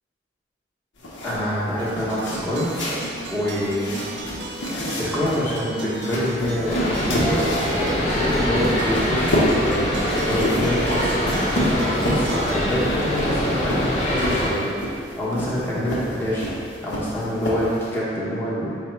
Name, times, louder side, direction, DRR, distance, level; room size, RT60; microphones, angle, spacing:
sound 1, 1.0-18.0, equal, 85° left, 0.8 m, -29 dB
voice 1, 1.2-2.7 3.3-4.0 5.0-14.6 15.2-16.5 16.8-18.8, equal, 10° left, -9 dB, 0.8 m, -26 dB
sound 2, 1.8-14.1, right 2 dB, 65° right, 0.3 m, -36 dB
sound 3, 6.7-14.5, equal, 35° left, 0.5 m, -24 dB
4.8 x 2.1 x 4.3 m, 2.3 s
head